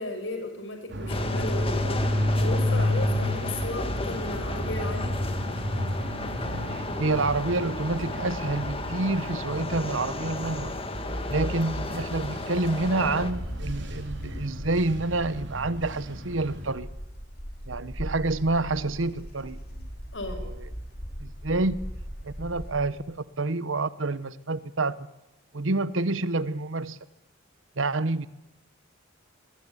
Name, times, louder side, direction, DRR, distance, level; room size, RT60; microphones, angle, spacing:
voice 1, 0.0-1.9 2.4-5.1 20.1-20.5, left 2 dB, 70° left, 6 dB, 6.3 m, -35 dB
sound 1, 0.9-16.7, left 1 dB, 65° right, 4.0 m, -31 dB
sound 2, 1.1-13.3, left 2 dB, 30° left, 1.9 m, -34 dB
voice 2, 6.7-10.7 11.3-16.9 17.7-19.9 20.3-20.7 21.2-21.8 22.2-24.9 25.5-27.0 27.8-28.3, right 2 dB, 80° right, 16 dB, 1.1 m, -28 dB
Wind, 12.9-22.9, equal, 55° left, 5.4 m, -39 dB
24.0 x 20.5 x 9.9 m, 0.96 s
head